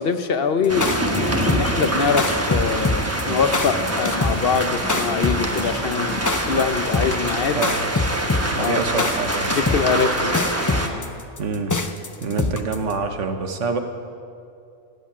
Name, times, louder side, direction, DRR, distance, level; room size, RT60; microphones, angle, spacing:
voice 1, 0.0-7.6 8.2-9.1 9.5-11.1, left 5 dB, 55° left, 10 dB, 1.0 m, -24 dB
sound 1, 0.6-12.9, left 3 dB, 25° left, 0.5 m, -24 dB
sound 2, 0.7-10.9, right 1 dB, 15° right, 1.0 m, -25 dB
voice 2, 7.5-7.8 8.5-9.6 11.4-11.8 12.2-13.8, right 4 dB, 80° right, 6 dB, 1.4 m, -26 dB
16.0 x 8.3 x 8.6 m, 2.4 s
omnidirectional pair, 1.2 m